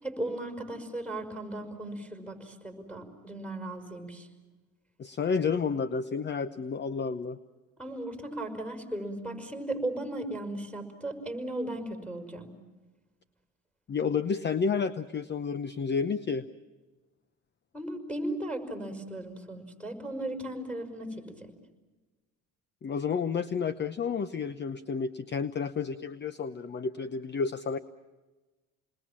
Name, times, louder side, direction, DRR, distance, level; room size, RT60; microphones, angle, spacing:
voice 1, 0.0-4.3 7.8-12.5 17.7-21.5, right 1 dB, 5° left, 6 dB, 5.7 m, -36 dB
voice 2, 5.0-7.4 13.9-16.4 22.8-27.8, left 5 dB, 30° left, 14 dB, 0.8 m, -30 dB
29.0 x 21.0 x 7.5 m, 1.2 s
supercardioid pair, 90°, 33 cm